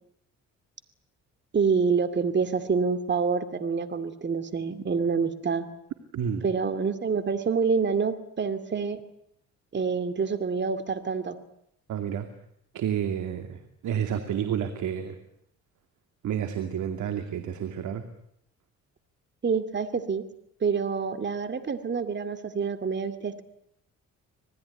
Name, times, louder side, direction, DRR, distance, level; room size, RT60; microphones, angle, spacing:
voice 1, 1.5-5.7 6.4-9.0 9.7-11.4 19.4-20.2 20.6-23.4, right 5 dB, 35° right, 10 dB, 2.5 m, -27 dB
voice 2, 6.1-6.4 11.9-12.3 12.7-15.2 16.2-18.1, right 8 dB, 75° right, 7 dB, 2.6 m, -30 dB
26.5 x 20.0 x 9.9 m, 0.74 s
cardioid pair, 90°, 30 cm